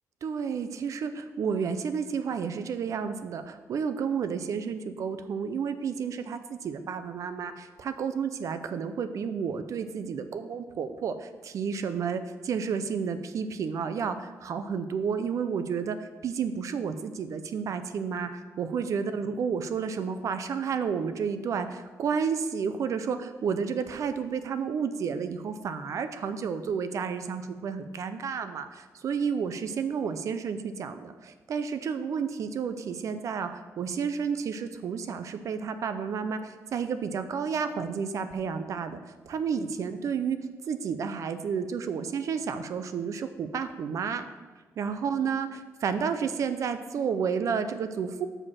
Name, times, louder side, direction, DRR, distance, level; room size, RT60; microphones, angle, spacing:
voice 1, 0.2-39.0 39.3-44.3 44.8-48.3, right 6 dB, 60° right, 10 dB, 0.5 m, -31 dB
6.5 x 4.9 x 5.7 m, 1.3 s
wide cardioid pair, 150°, 6 cm